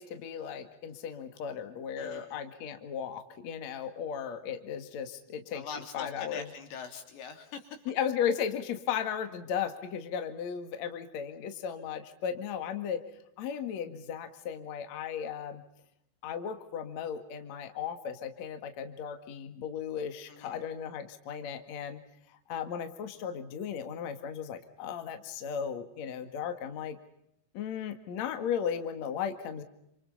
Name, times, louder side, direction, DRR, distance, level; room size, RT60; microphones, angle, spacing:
voice 1, 0.0-5.7 5.9-6.5 7.9-13.0 13.4-15.6 16.2-22.0 22.5-27.0 27.5-29.6, left 8 dB, 50° left, 7 dB, 2.6 m, -36 dB
voice 2, 2.0-2.4 5.5-7.8 20.3-20.6, left 6 dB, 80° left, 5 dB, 5.2 m, -43 dB
28.5 x 27.0 x 5.5 m, 0.76 s
omnidirectional pair, 5.1 m